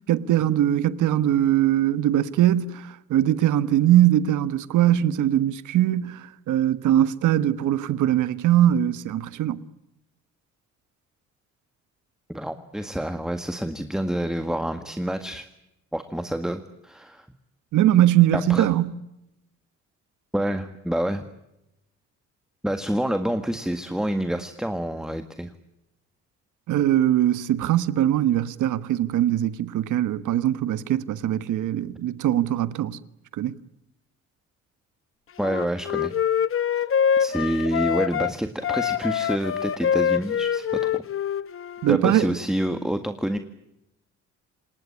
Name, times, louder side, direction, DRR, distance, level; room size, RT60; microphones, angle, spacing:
voice 1, 0.1-9.6 17.7-18.9 26.7-33.0 33.4-33.5 41.8-42.4, right 12 dB, 80° right, 1.4 m, -21 dB
voice 2, 12.3-15.5 15.9-17.3 18.5-18.7 20.3-21.2 22.6-25.5 35.4-36.1 36.7-36.8 37.2-40.9 41.9-43.4, right 1 dB, ahead, 1.7 m, -27 dB
Wind instrument woodwind instrument, 35.4-38.3 38.6-42.0, left 8 dB, 45° left, 0.9 m, -25 dB
28.0 x 19.5 x 10.0 m
cardioid pair, 90°, 30 cm